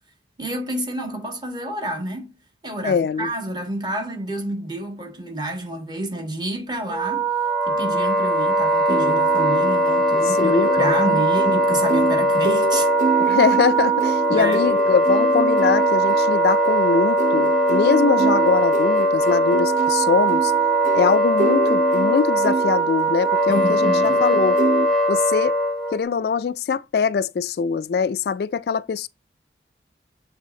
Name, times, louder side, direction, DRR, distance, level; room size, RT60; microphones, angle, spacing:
voice 1, 0.4-2.4 2.6-7.3 7.7-12.9 14.3-14.8 23.5-24.2, right 1 dB, 25° right, 1.8 m, -29 dB
voice 2, 2.8-3.3 10.3-11.2 13.2-20.5 20.9-23.9 24.2-24.6 25.1-25.6 25.9-29.1, left 6 dB, 60° left, 0.3 m, -22 dB
Wind instrument woodwind instrument, 6.9-26.0, right 1 dB, ahead, 1.0 m, -20 dB
sound 1, 8.9-24.9, right 3 dB, 45° right, 0.5 m, -28 dB
7.3 x 3.4 x 3.8 m
head